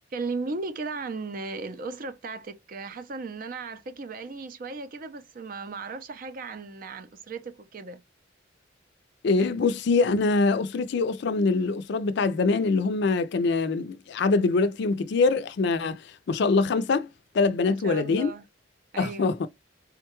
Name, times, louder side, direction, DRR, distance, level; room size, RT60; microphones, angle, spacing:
voice 1, 0.1-8.0 17.7-18.4 18.9-19.4, right 4 dB, 50° right, 0.5 m, -36 dB
voice 2, 9.2-18.3 19.0-19.5, left 3 dB, 65° left, 0.4 m, -24 dB
3.7 x 2.2 x 2.9 m
head